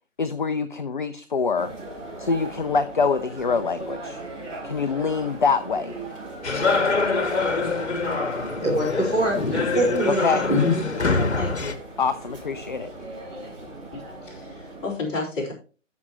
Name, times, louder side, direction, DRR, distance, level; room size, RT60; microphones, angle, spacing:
voice 1, 0.2-1.7 2.2-4.2 4.6-5.9 10.1-10.4 12.0-12.9, left 5 dB, 40° left, 10 dB, 0.6 m, -25 dB
sound 1, 1.5-14.9, right 2 dB, 25° right, 3.9 m, -38 dB
sound 2, 6.4-11.7, left 3 dB, 60° left, 1.4 m, -25 dB
voice 2, 8.5-11.8, equal, 5° right, -10 dB, 0.7 m, -25 dB
voice 3, 13.9-15.5, left 3 dB, 15° left, -6 dB, 4.0 m, -31 dB
14.0 x 6.2 x 3.0 m, 0.35 s
figure-of-eight pair, 150°, 38 cm